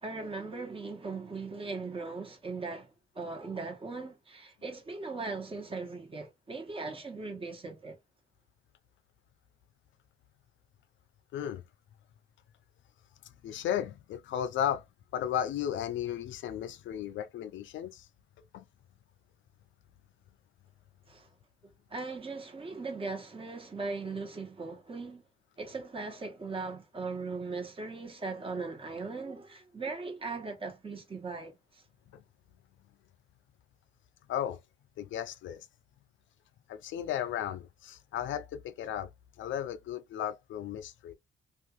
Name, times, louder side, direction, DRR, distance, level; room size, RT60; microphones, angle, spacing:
voice 1, 0.0-8.0 21.1-21.3 21.9-25.2 25.6-31.8, right 3 dB, 25° right, 1.2 m, -39 dB
voice 2, 11.3-11.6 13.2-14.8 15.1-18.1 18.5-18.6 32.1-32.2 34.3-34.6 35.0-35.7 36.7-39.1 39.4-41.1, left 10 dB, 70° left, 0.5 m, -35 dB
2.6 x 2.4 x 2.9 m
cardioid pair, 90°, 20 cm